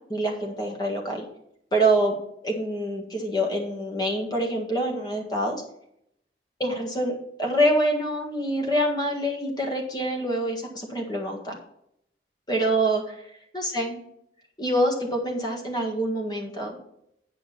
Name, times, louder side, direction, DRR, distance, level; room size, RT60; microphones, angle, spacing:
voice 1, 0.1-1.2 1.7-2.1 2.4-5.6 6.6-11.6 12.5-13.2 13.5-14.0 14.6-16.8, right 1 dB, 25° left, 1 dB, 1.7 m, -26 dB
9.2 x 5.2 x 5.7 m, 0.75 s
head